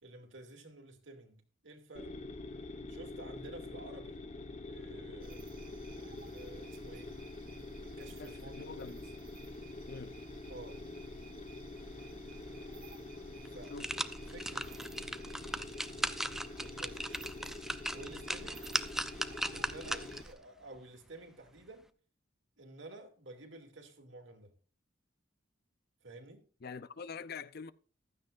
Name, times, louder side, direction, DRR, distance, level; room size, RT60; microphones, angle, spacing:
voice 1, 0.0-2.1 2.9-4.2 4.7-5.5 6.0-7.2 7.8-8.7 10.5-10.8 13.5-13.7 14.0-17.3 17.9-18.7 19.5-21.9 22.6-24.5 26.0-26.4, right 2 dB, 75° right, 2.5 m, -52 dB
sound 1, 1.9-20.2, left 2 dB, 35° left, 1.2 m, -46 dB
sound 2, 5.2-20.3, right 3 dB, 50° right, 1.6 m, -55 dB
voice 2, 8.0-9.0 9.9-10.2 13.7-13.9 26.6-27.7, left 5 dB, 55° left, 0.6 m, -45 dB
sound 3, 12.9-13.0 13.4-20.3 20.7-20.8, right 1 dB, ahead, 0.5 m, -38 dB
15.5 x 13.0 x 2.5 m
head